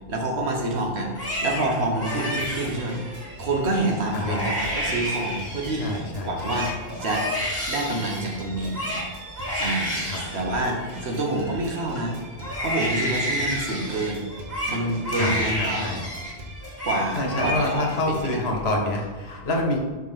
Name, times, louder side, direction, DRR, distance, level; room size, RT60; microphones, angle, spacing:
voice 1, 0.1-3.0 3.4-6.7 7.0-7.3 7.7-8.8 9.6-9.9 10.3-12.2 12.6-14.2 14.7-15.9 16.8-18.5, right 2 dB, 75° right, 1 dB, 1.4 m, -27 dB
Crying sobbing, 1.0-3.3 3.8-3.9 4.2-5.9 6.2-12.0 12.4-16.3 16.6-17.0 17.3-18.0 18.3-19.0, equal, 10° left, 2.0 m, -30 dB
sound 1, 2.4-18.3, right 1 dB, 40° right, 1.2 m, -41 dB
voice 2, 4.1-4.4 5.8-6.6 10.1-10.2 14.7-14.9 15.2-16.0 17.1-19.8, left 2 dB, 70° left, 1 dB, 1.3 m, -27 dB
5.5 x 3.5 x 5.7 m, 1.4 s
omnidirectional pair, 1.1 m